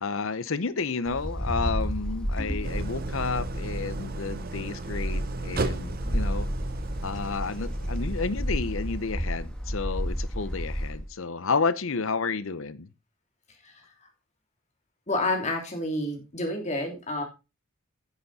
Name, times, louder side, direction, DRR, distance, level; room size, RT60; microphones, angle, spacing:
voice 1, 0.0-6.5 7.0-12.9, left 4 dB, 70° left, 16 dB, 0.8 m, -31 dB
Wind, 1.1-11.1, equal, 5° left, 1.5 m, -31 dB
Idling, 2.6-9.7, right 3 dB, 45° right, 0.8 m, -36 dB
voice 2, 15.1-17.2, left 2 dB, 35° left, 3 dB, 3.0 m, -29 dB
10.0 x 8.2 x 4.2 m, 0.28 s
head